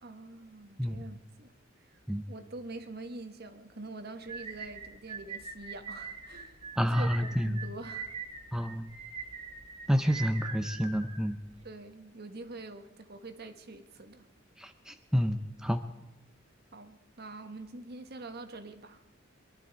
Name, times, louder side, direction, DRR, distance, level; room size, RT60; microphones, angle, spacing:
voice 1, 0.0-2.0 2.3-6.6 7.0-8.2 8.5-8.7 11.6-14.3 16.7-19.0, right 2 dB, 50° right, 8 dB, 1.3 m, -45 dB
sound 1, 4.3-11.6, right 5 dB, 30° right, 2.2 m, -43 dB
voice 2, 6.8-7.6 8.5-8.9 9.9-11.4 14.6-15.8, equal, 5° right, 8 dB, 0.5 m, -29 dB
23.0 x 12.0 x 4.6 m, 1.0 s
head